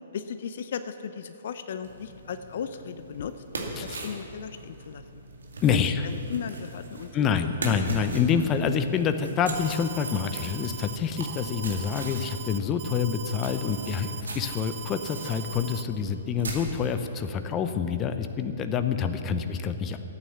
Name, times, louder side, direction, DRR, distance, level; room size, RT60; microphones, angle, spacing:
voice 1, 0.1-3.4 3.8-5.2 5.7-7.1 7.4-7.5 12.2-12.3, left 7 dB, 60° left, 10 dB, 0.6 m, -36 dB
sound 1, 1.8-16.8, right 2 dB, 75° right, 2.3 m, -40 dB
voice 2, 5.6-6.1 7.1-20.0, left 7 dB, 25° left, 9 dB, 0.8 m, -27 dB
Alarm, 9.5-15.8, right 10 dB, 50° right, 0.7 m, -40 dB
14.0 x 9.3 x 7.1 m, 2.8 s
figure-of-eight pair, 125°, 0 cm